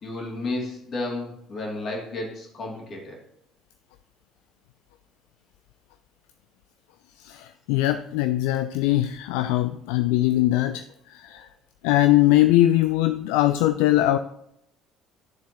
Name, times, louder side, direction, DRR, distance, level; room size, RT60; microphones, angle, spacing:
voice 1, 0.0-3.2 11.3-11.4, left 2 dB, 40° left, -1 dB, 2.8 m, -32 dB
voice 2, 7.2-11.5 11.8-14.2, left 15 dB, 65° left, 10 dB, 0.3 m, -21 dB
11.5 x 7.0 x 3.0 m, 0.76 s
figure-of-eight pair, 55°, 0 cm